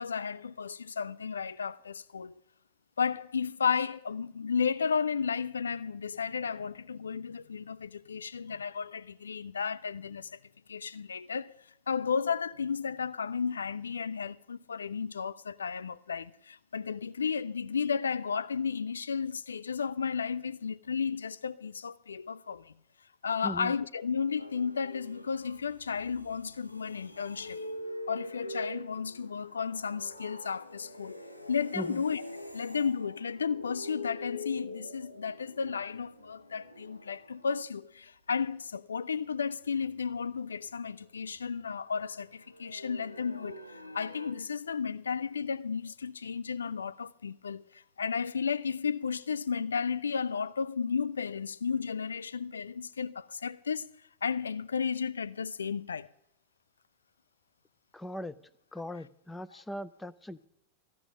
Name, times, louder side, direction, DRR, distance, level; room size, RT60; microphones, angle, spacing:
voice 1, 0.0-2.4 3.0-10.4 10.7-11.5 11.9-22.7 23.2-27.6 28.1-32.2 32.5-53.9 54.2-56.1, left 6 dB, 70° left, 0.4 m, -33 dB
voice 2, 23.4-23.7 31.7-32.0 57.9-58.3 58.7-60.5, equal, 5° left, 0.5 m, -39 dB
sound 1, 24.4-37.6 39.7-41.5 41.9-44.3, left 1 dB, 85° left, 0.8 m, -45 dB
14.0 x 6.2 x 10.0 m
figure-of-eight pair, 90°, 0 cm